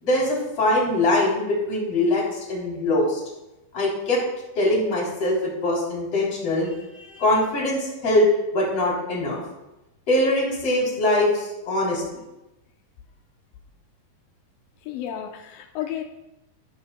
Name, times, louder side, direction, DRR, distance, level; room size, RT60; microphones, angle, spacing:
voice 1, 0.0-3.2 3.7-4.2 4.6-8.3 8.5-9.4 10.1-12.2, left 1 dB, 45° left, -4 dB, 4.2 m, -22 dB
voice 2, 14.8-16.0, left 11 dB, 90° left, 3 dB, 2.5 m, -32 dB
13.5 x 12.0 x 2.2 m, 0.97 s
omnidirectional pair, 4.0 m